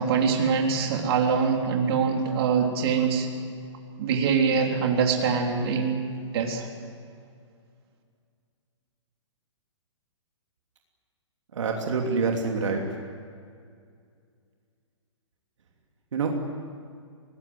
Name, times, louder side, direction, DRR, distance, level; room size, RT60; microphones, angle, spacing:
voice 1, 0.0-3.3 4.0-6.0 6.3-6.7, right 6 dB, 50° right, 2 dB, 3.4 m, -24 dB
voice 2, 11.5-12.8 16.1-16.3, right 4 dB, 70° right, 1 dB, 3.0 m, -26 dB
23.0 x 19.5 x 7.8 m, 2.2 s
hypercardioid pair, 140°, 16 cm